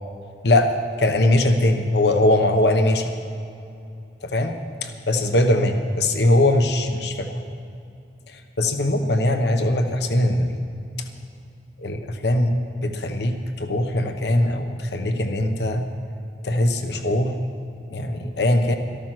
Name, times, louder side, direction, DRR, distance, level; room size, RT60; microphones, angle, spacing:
voice 1, 1.0-3.2 4.3-4.5 4.8-7.4 8.3-10.6 11.8-12.5 12.8-15.8 16.4-17.4 17.9-18.8, left 1 dB, 75° left, 6 dB, 1.0 m, -21 dB
13.5 x 13.0 x 6.1 m, 2.6 s
head